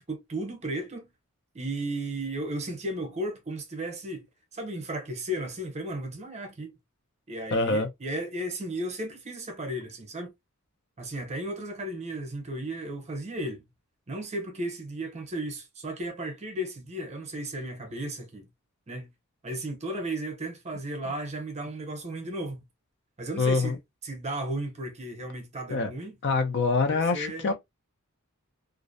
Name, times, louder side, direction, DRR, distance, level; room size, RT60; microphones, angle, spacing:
voice 1, 0.1-1.1 1.5-4.3 4.5-6.8 7.3-10.3 11.0-13.7 14.1-18.5 18.9-19.1 19.4-22.6 23.2-23.8 24.0-26.1 26.9-27.5, right 1 dB, 30° right, 0.7 m, -34 dB
voice 2, 7.5-7.9 23.4-23.8 25.7-25.9 26.2-27.5, left 3 dB, 55° left, 0.4 m, -25 dB
2.5 x 2.0 x 2.5 m
head